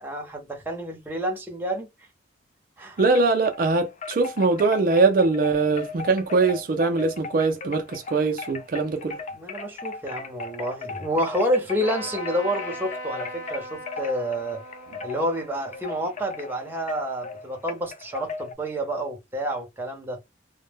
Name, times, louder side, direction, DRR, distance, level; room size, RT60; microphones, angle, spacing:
voice 1, 0.0-1.9 2.8-3.0 9.3-14.6 15.0-20.2, equal, 10° right, 0.6 m, -29 dB
Wind chime, 3.0-3.6 4.0-18.5, left 4 dB, 40° left, 0.3 m, -38 dB
voice 2, 3.0-9.2, right 3 dB, 50° right, 0.4 m, -22 dB
Trumpet, 11.8-17.3, equal, 65° left, 0.7 m, -40 dB
2.1 x 2.1 x 3.2 m
head